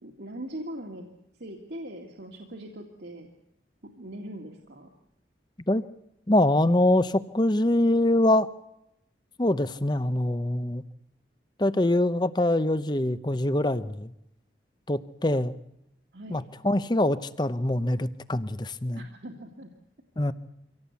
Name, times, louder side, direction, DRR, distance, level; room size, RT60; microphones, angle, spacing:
voice 1, 0.0-1.1 1.3-3.3 3.8-4.9 16.1-16.4 18.9-19.7, right 1 dB, 65° right, 2 dB, 2.2 m, -41 dB
voice 2, 6.3-8.5 9.4-10.8 11.6-14.1 14.9-15.6 16.3-19.0 20.2-20.3, left 1 dB, 25° left, 14 dB, 0.8 m, -24 dB
25.0 x 17.5 x 8.3 m, 0.84 s
head